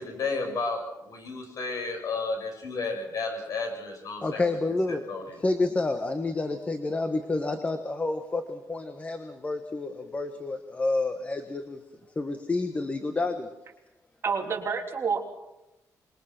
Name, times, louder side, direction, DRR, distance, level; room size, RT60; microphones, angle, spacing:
voice 1, 0.0-4.4 4.9-5.2, left 3 dB, 60° left, 3 dB, 7.5 m, -32 dB
voice 2, 4.2-5.0 5.3-11.8 12.1-13.5, left 2 dB, 20° left, 7 dB, 1.4 m, -29 dB
voice 3, 14.2-15.2, right 5 dB, 40° right, 1 dB, 3.6 m, -28 dB
26.0 x 22.5 x 6.1 m, 0.92 s
wide cardioid pair, 155°, 7 cm